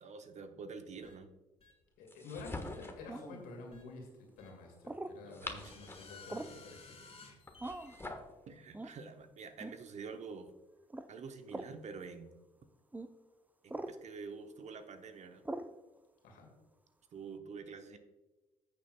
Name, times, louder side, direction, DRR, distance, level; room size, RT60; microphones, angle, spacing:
voice 1, 0.0-1.3 5.2-5.8 8.5-10.5 11.1-12.3 13.6-15.4 17.1-18.0, right 5 dB, 45° right, 8 dB, 0.9 m, -47 dB
sound 1, 1.0-1.1 1.6-1.7 2.7-2.8 3.7-3.8 4.4-4.5 5.5-8.0, left 4 dB, 35° left, 2.5 m, -55 dB
voice 2, 2.0-7.3 16.2-16.5, left 3 dB, 70° left, 2 dB, 2.2 m, -50 dB
sound 2, 2.1-3.1 5.1-6.2 7.4-8.3, left 2 dB, 15° left, 1.3 m, -45 dB
sound 3, 3.1-3.4 4.8-5.2 6.3-6.6 7.6-8.0 8.7-9.0 9.6-9.8 10.9-11.1 11.5-11.7 12.9-13.1 13.7-14.0 15.4-15.7, right 2 dB, 10° right, 0.6 m, -42 dB
15.0 x 6.7 x 2.2 m, 1.2 s
hypercardioid pair, 50°, 16 cm